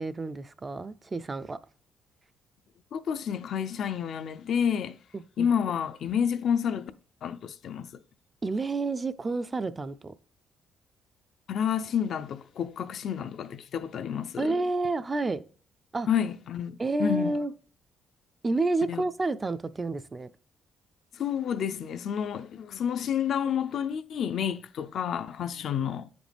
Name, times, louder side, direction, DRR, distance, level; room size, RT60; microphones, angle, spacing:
voice 1, 0.0-1.6 5.1-5.5 8.4-10.1 14.4-15.4 15.9-16.1 16.8-17.5 18.4-20.3, right 2 dB, 20° right, 0.3 m, -29 dB
voice 2, 2.9-5.0 5.4-6.9 7.2-8.0 11.5-14.6 16.1-17.4 18.9-19.0 21.1-26.1, left 8 dB, 60° left, 0.4 m, -29 dB
8.5 x 5.2 x 3.3 m
cardioid pair, 145°, 0 cm